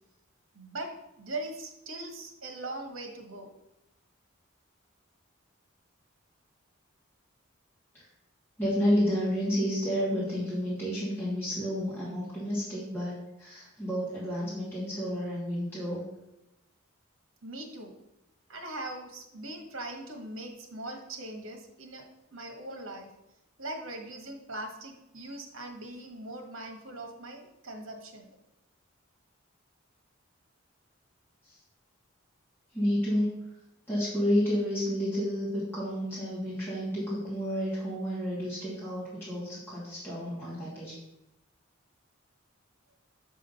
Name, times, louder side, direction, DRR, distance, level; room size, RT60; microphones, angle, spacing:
voice 1, 0.5-0.9 1.2-3.5 17.4-17.9 18.5-22.0 22.3-23.1 23.6-28.3, right 2 dB, 75° right, 4 dB, 1.4 m, -40 dB
voice 2, 8.6-16.0 32.7-33.3 33.9-40.9, equal, 10° left, -10 dB, 2.6 m, -30 dB
7.5 x 3.7 x 5.5 m, 0.90 s
head